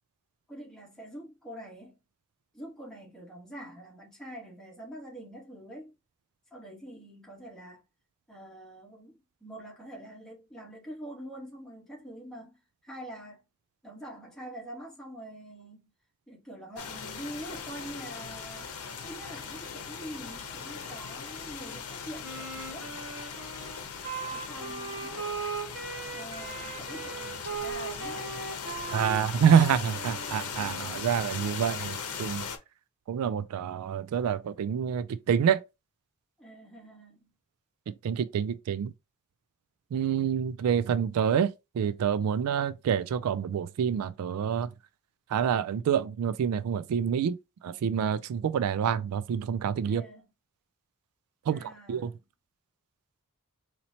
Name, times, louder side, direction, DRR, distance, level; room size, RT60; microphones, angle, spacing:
voice 1, 0.5-2.0 2.5-5.9 6.5-7.8 8.3-13.4 13.8-15.9 16.3-18.8 19.0-22.9 24.3-25.2 26.1-28.4 36.4-37.3 49.8-50.3 51.5-52.2, right 1 dB, ahead, 1.4 m, -45 dB
sound 1, 16.8-32.6, left 6 dB, 90° left, 0.8 m, -39 dB
Wind instrument woodwind instrument, 22.2-31.2, right 4 dB, 55° right, 1.1 m, -39 dB
voice 2, 28.9-32.4 33.1-35.6 38.0-38.9 39.9-41.5 41.7-44.7 45.3-47.4 47.6-50.0 51.5-51.6 51.9-52.1, right 8 dB, 80° right, 0.3 m, -27 dB
4.1 x 2.9 x 2.8 m
head